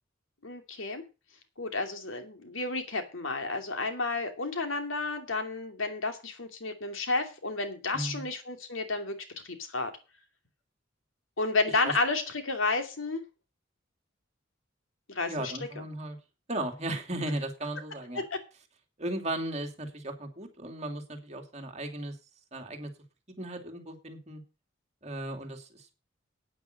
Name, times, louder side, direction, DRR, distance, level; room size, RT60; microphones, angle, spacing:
voice 1, 0.4-1.0 1.6-9.2 9.4-9.9 11.4-13.2 15.1-15.5 18.3-18.4, left 3 dB, 90° left, 6 dB, 2.6 m, -31 dB
voice 2, 7.9-8.2 11.8-11.9 15.3-16.2 16.5-18.2 19.0-22.1 22.5-22.9 23.4-24.4 25.0-25.9, right 1 dB, 35° right, 3 dB, 2.6 m, -36 dB
9.3 x 9.3 x 6.6 m, 0.31 s
head